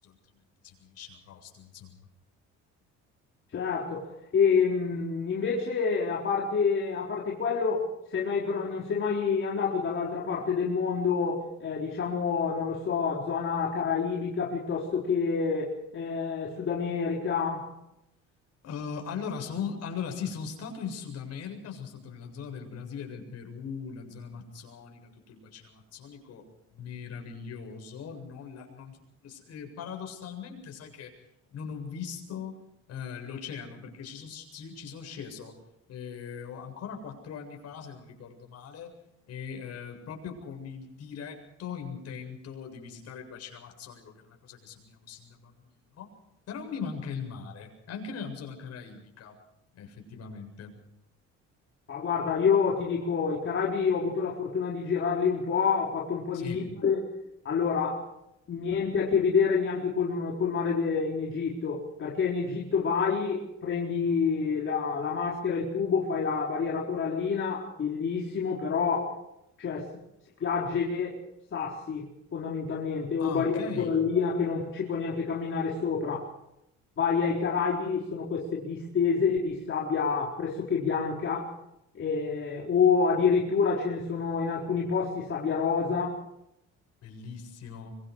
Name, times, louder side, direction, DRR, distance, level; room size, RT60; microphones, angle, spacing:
voice 1, 0.6-2.0 18.6-31.1 31.5-32.5 32.9-35.5 35.9-38.9 39.3-45.7 45.9-46.1 46.5-49.4 49.7-50.7 56.3-56.6 73.2-74.0 87.0-88.0, left 6 dB, 60° left, 3 dB, 7.6 m, -40 dB
voice 2, 3.5-17.7 51.9-57.1 57.4-58.1 58.5-69.2 69.6-69.9 70.4-71.2 71.5-76.3 77.0-81.5 81.9-86.2, left 5 dB, 45° left, -2 dB, 4.3 m, -28 dB
25.5 x 23.5 x 4.9 m, 0.83 s
cardioid pair, 110°, 29 cm